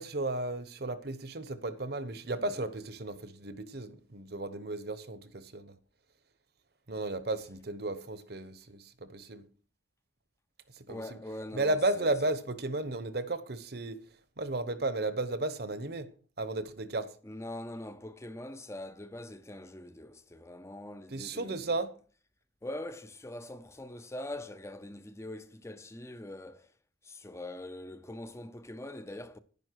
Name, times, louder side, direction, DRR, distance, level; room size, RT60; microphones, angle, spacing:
voice 1, 0.0-5.7 6.9-9.4 10.8-11.2 11.5-14.0 14.4-16.1 16.4-17.1 21.1-21.9, right 2 dB, 55° right, 1.1 m, -34 dB
voice 2, 10.9-12.1 17.2-21.8 22.6-26.7 27.0-29.4, left 1 dB, 15° left, 0.6 m, -43 dB
11.0 x 10.5 x 4.7 m
head